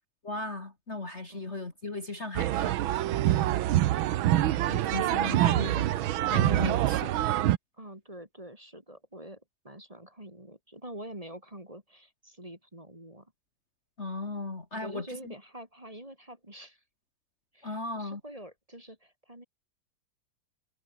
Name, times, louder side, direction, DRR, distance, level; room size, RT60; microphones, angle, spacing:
voice 1, 0.2-2.8 3.2-3.3 4.4-7.2 14.0-15.3 17.6-18.2, left 2 dB, 30° left, 2.7 m, -37 dB
sound 1, 2.4-7.6, right 13 dB, 75° right, 1.6 m, -25 dB
voice 2, 7.8-13.3 14.7-16.8 17.5-19.4, right 1 dB, 15° right, 4.4 m, -46 dB
omnidirectional pair, 2.3 m